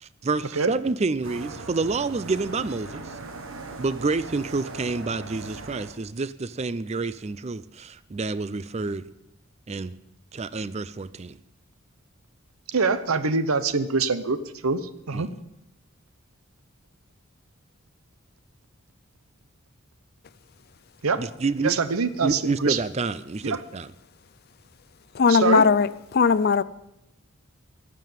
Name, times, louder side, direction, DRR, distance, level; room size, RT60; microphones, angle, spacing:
voice 1, 0.0-3.1 3.8-9.0 9.7-9.9 10.3-11.4 15.1-15.3 21.2-21.7 22.2-23.9, right 3 dB, 30° right, 0.4 m, -28 dB
sound 1, 1.2-6.0, right 3 dB, 70° right, 1.2 m, -39 dB
voice 2, 12.7-15.3 21.0-21.2 21.6-22.8 23.4-23.6 25.3-25.6, right 4 dB, 85° right, 0.8 m, -24 dB
voice 3, 25.1-26.6, left 5 dB, 45° left, 0.4 m, -19 dB
12.5 x 7.6 x 9.1 m
head